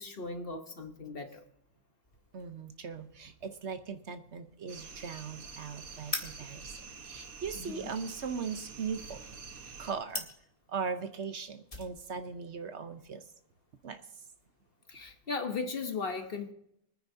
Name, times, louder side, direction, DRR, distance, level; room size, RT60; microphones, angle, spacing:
voice 1, 0.0-1.4 7.5-7.9 14.9-16.5, left 4 dB, 45° left, 1.2 m, -37 dB
sound 1, 2.0-15.2, left 1 dB, 25° left, 1.9 m, -48 dB
voice 2, 2.3-9.3 9.8-10.3 10.7-13.3 13.8-14.2, right 6 dB, 60° right, 1.1 m, -39 dB
sound 2, 4.7-9.9, right 4 dB, 85° right, 1.8 m, -47 dB
25.0 x 9.8 x 2.7 m
omnidirectional pair, 1.4 m